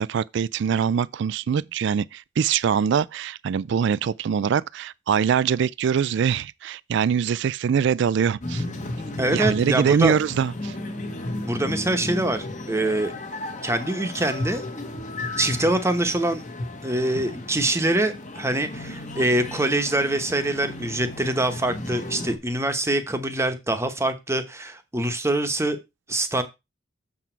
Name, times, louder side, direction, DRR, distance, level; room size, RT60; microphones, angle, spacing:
voice 1, 0.0-8.6 9.3-10.8, right 7 dB, 65° right, 0.3 m, -23 dB
sound 1, 8.4-22.4, left 1 dB, 40° left, 1.3 m, -34 dB
voice 2, 9.2-10.2 11.5-13.1 13.6-14.6 15.4-16.4 16.8-25.8 26.1-26.4, right 1 dB, 15° right, 1.0 m, -24 dB
7.3 x 6.1 x 4.5 m
head